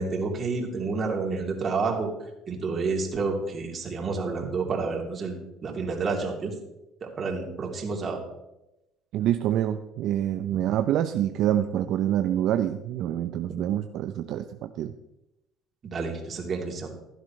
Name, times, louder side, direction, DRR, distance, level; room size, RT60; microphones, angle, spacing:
voice 1, 0.0-2.1 2.5-6.5 7.0-8.2 15.8-16.9, right 4 dB, 40° right, 0 dB, 3.0 m, -29 dB
voice 2, 9.1-14.9, right 11 dB, 65° right, 8 dB, 0.6 m, -26 dB
16.0 x 11.0 x 3.2 m, 0.91 s
supercardioid pair, 100°, 0 cm